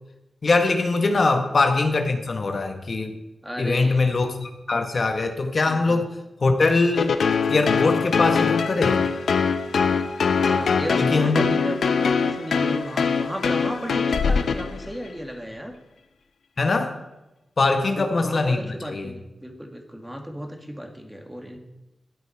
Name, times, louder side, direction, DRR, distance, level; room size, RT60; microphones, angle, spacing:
voice 1, 0.4-3.2 3.6-6.1 6.4-7.2 7.5-9.0 11.0-11.5 16.6-17.0 17.6-18.6 18.9-19.1, left 3 dB, 55° left, 6 dB, 1.2 m, -22 dB
voice 2, 1.1-1.4 3.4-4.0 5.7-6.0 10.4-15.7 17.6-21.6, equal, 5° right, 4 dB, 2.0 m, -34 dB
sound 1, 6.9-15.1, left 5 dB, 80° left, 0.7 m, -22 dB
14.5 x 8.2 x 4.5 m, 0.97 s
cardioid pair, 50°, 0 cm